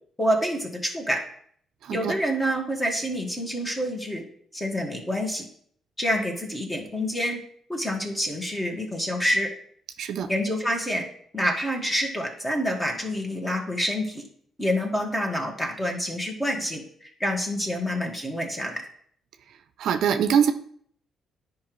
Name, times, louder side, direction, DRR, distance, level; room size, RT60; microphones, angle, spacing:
voice 1, 0.2-1.2 1.9-4.2 4.5-5.5 6.0-7.4 7.7-9.5 10.3-11.0 11.3-14.2 14.6-18.8, equal, 15° left, 1 dB, 1.7 m, -27 dB
voice 2, 1.8-2.1 10.0-10.3 19.8-20.5, right 8 dB, 75° right, 8 dB, 0.5 m, -23 dB
10.0 x 5.1 x 3.1 m, 0.62 s
cardioid pair, 90°, 0 cm